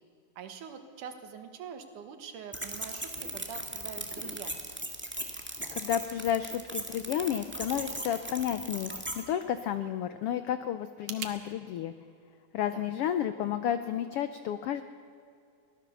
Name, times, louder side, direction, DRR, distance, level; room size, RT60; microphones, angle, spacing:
voice 1, 0.4-4.7 12.7-13.0, right 7 dB, 85° right, 7 dB, 3.1 m, -44 dB
sound 1, 2.5-9.2, right 1 dB, 5° right, 1.2 m, -38 dB
voice 2, 5.7-8.9 9.1-11.9 12.5-14.8, left 10 dB, 85° left, 11 dB, 1.2 m, -31 dB
sound 2, 8.7-11.4, right 8 dB, 65° right, 2.3 m, -46 dB
23.5 x 16.5 x 7.1 m, 2.4 s
omnidirectional pair, 3.5 m